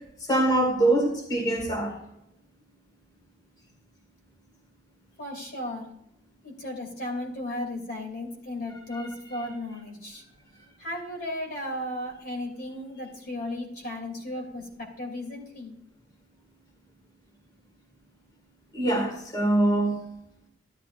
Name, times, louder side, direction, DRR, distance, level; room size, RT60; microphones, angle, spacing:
voice 1, 0.2-2.0 8.9-9.1 18.7-20.0, right 1 dB, 25° left, 1 dB, 2.1 m, -24 dB
voice 2, 5.2-5.9 6.4-10.2 10.8-15.7, left 1 dB, 55° left, 0 dB, 2.8 m, -35 dB
12.5 x 12.0 x 2.5 m, 0.76 s
head